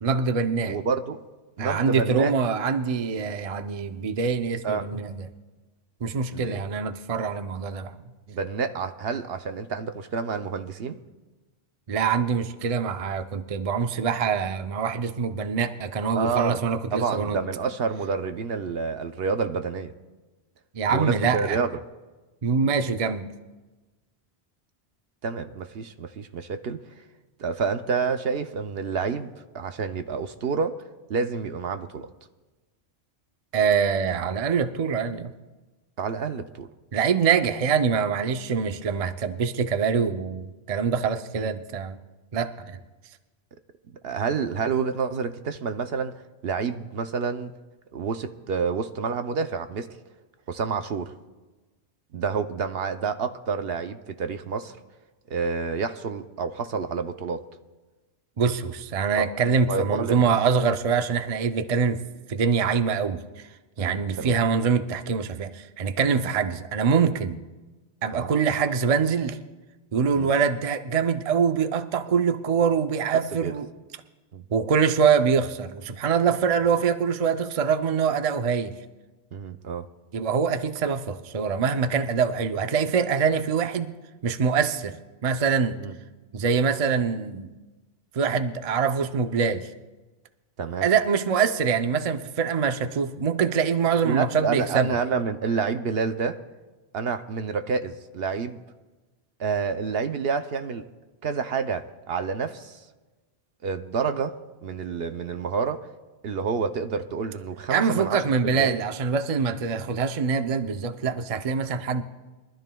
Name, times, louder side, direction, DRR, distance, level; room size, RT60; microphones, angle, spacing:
voice 1, 0.0-0.8 1.6-5.3 6.0-8.0 11.9-17.4 20.7-21.6 22.4-23.3 33.5-35.3 36.9-42.0 42.3-42.8 58.4-62.0 62.3-63.5 63.8-67.4 68.0-69.4 69.9-73.7 74.5-78.8 80.1-83.9 84.2-85.8 86.3-87.5 88.1-89.7 90.8-94.9 107.7-112.0, right 6 dB, 40° right, 8 dB, 0.6 m, -24 dB
voice 2, 0.7-1.2 1.6-2.3 4.6-4.9 6.3-6.6 8.3-11.0 16.1-16.6 16.9-19.9 20.9-21.8 25.2-26.8 27.4-29.3 29.5-30.7 31.1-32.1 36.0-36.7 41.3-41.5 44.0-46.1 46.4-47.5 47.9-49.9 50.5-51.1 52.1-54.8 55.3-57.4 59.2-59.3 59.7-60.3 63.8-64.4 68.1-68.3 70.1-70.3 73.3-73.5 74.3-74.5 79.3-79.9 85.8-85.9 90.6-90.9 94.0-96.4 96.9-98.6 99.4-100.8 101.2-102.8 103.6-105.9 106.2-108.2 108.5-108.8, right 5 dB, 70° right, 8 dB, 0.9 m, -28 dB
24.0 x 13.0 x 2.3 m, 1.2 s
omnidirectional pair, 1.1 m